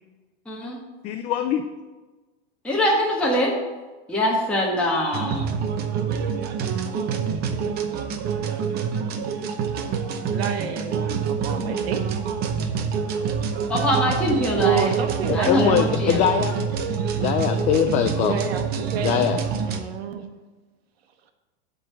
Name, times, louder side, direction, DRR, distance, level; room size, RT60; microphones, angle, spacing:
voice 1, 0.5-0.8 2.6-3.6 4.1-5.5 13.7-14.9 15.3-16.2, equal, 5° left, -5 dB, 1.4 m, -23 dB
voice 2, 1.0-1.6 15.3-16.6 17.1-18.4 18.8-19.4, left 9 dB, 25° left, 7 dB, 0.4 m, -22 dB
sound 1, 5.1-19.8, right 6 dB, 30° right, 0.8 m, -26 dB
voice 3, 10.3-12.0 14.6-15.8 18.2-19.3 19.6-20.2, right 8 dB, 70° right, 6 dB, 1.3 m, -28 dB
10.5 x 3.9 x 6.9 m, 1.2 s
supercardioid pair, 135°, 32 cm